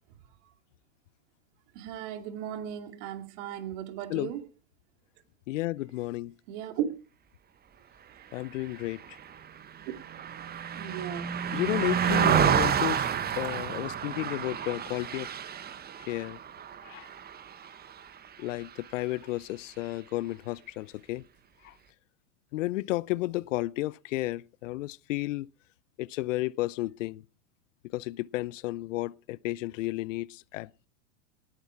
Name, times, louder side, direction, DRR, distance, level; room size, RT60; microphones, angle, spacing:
voice 1, 1.7-4.4 6.5-6.9 10.6-11.4 12.1-12.4, right 10 dB, 60° right, 2.6 m, -36 dB
voice 2, 5.5-6.3 8.3-9.2 11.5-13.1 13.4-15.3 16.1-16.4 16.8-17.1 18.4-21.2 21.6-21.7 22.5-25.5 26.0-27.2 27.9-30.9, left 18 dB, 70° left, 0.6 m, -32 dB
Car passing by, 8.7-18.3 18.6-18.9, right 8 dB, 25° right, 1.2 m, -30 dB
19.0 x 9.9 x 4.6 m
hypercardioid pair, 105°, 39 cm